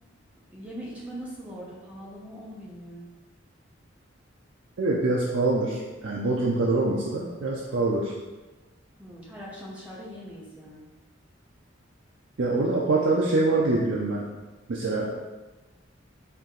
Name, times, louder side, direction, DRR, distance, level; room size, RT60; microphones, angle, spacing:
voice 1, 0.5-3.1 9.0-10.8, equal, 5° right, -6 dB, 0.8 m, -41 dB
voice 2, 4.8-8.1 12.4-14.2 14.7-15.1, right 2 dB, 65° right, -3 dB, 0.5 m, -24 dB
4.6 x 2.9 x 3.8 m, 1.2 s
head